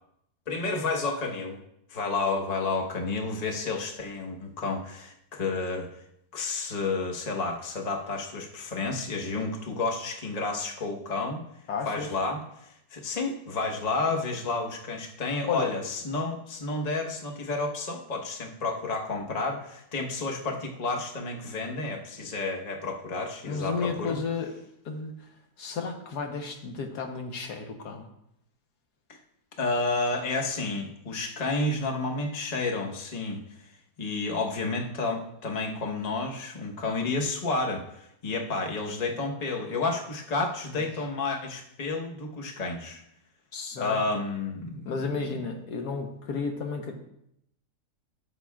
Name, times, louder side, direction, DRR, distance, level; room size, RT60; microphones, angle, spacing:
voice 1, 0.5-1.6 1.9-5.9 6.3-11.4 11.9-24.2 29.1-29.2 29.6-33.4 34.0-43.0 43.8-44.9, left 3 dB, 30° left, 1 dB, 1.0 m, -31 dB
voice 2, 11.7-12.1 15.5-15.8 23.5-24.5 24.8-25.1 25.6-28.1 43.5-44.0 44.8-46.9, left 5 dB, 75° left, 4 dB, 1.6 m, -32 dB
13.0 x 7.5 x 2.4 m, 0.77 s
omnidirectional pair, 1.7 m